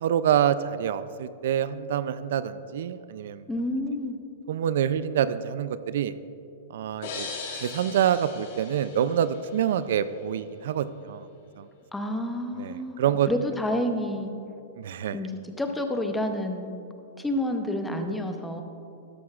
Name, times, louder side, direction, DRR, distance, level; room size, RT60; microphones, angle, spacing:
voice 1, 0.0-3.4 4.5-6.1 6.7-7.3 7.5-11.3 11.6-11.7 12.6-13.3 14.8-15.2, right 9 dB, 65° right, 13 dB, 0.3 m, -26 dB
voice 2, 3.5-4.2 11.9-14.3 15.1-16.7 17.2-18.6, left 1 dB, 5° left, 5 dB, 0.7 m, -29 dB
sound 1, 7.0-9.8, left 4 dB, 60° left, 2.2 m, -39 dB
13.0 x 11.0 x 2.4 m, 2.6 s
hypercardioid pair, 155°, 0 cm